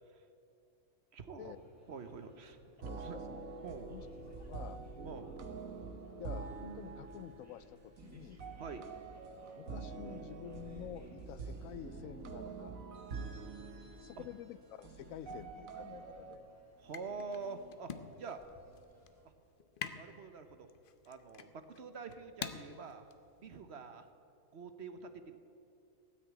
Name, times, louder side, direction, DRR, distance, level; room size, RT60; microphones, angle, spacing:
voice 1, 1.1-1.6 1.9-2.6 2.9-3.2 3.6-3.9 5.0-5.3 8.6-8.9 14.2-14.3 16.8-18.4 19.9-20.7 21.1-23.1 23.4-24.1 24.5-25.4, right 4 dB, 55° right, 9 dB, 1.1 m, -46 dB
sound 1, 1.4-19.3, right 1 dB, 10° right, 2.5 m, -63 dB
voice 2, 2.8-4.1 4.4-4.8 6.2-8.4 9.5-12.8 14.0-16.5, left 11 dB, 90° left, 16 dB, 1.0 m, -49 dB
sound 2, 2.8-16.4, right 4 dB, 80° right, 1.5 m, -46 dB
sound 3, 15.3-24.1, left 7 dB, 50° left, 0.8 m, -49 dB
17.0 x 6.5 x 9.0 m, 2.6 s
omnidirectional pair, 1.4 m